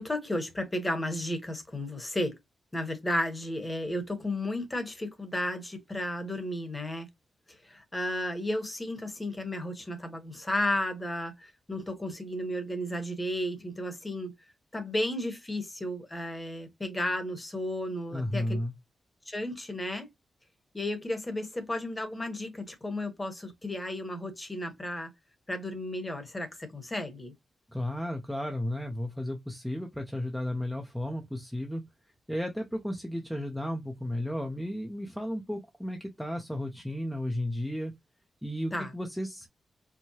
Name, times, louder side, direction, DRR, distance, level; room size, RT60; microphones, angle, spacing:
voice 1, 0.0-2.4 2.7-7.1 7.5-14.3 14.7-18.6 19.3-20.1 20.7-25.1 25.5-27.3 38.7-38.9, left 1 dB, 15° left, 1.1 m, -33 dB
voice 2, 18.1-18.7 27.7-31.8 32.3-37.9 38.4-39.5, left 1 dB, ahead, 0.6 m, -33 dB
4.6 x 2.1 x 2.8 m
wide cardioid pair, 135°, 0 cm